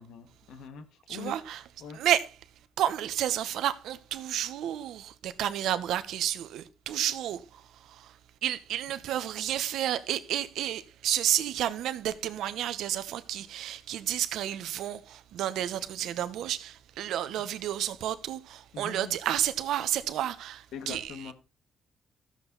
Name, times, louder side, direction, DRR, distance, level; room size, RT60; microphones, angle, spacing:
voice 1, 0.0-1.3 1.8-2.0 16.0-16.1 18.7-19.2 20.7-21.3, left 6 dB, 80° left, 1.9 m, -43 dB
voice 2, 1.1-1.6 1.9-2.3 2.8-21.3, right 11 dB, 80° right, 1.1 m, -31 dB
14.0 x 7.6 x 4.0 m
cardioid pair, 90°, 0 cm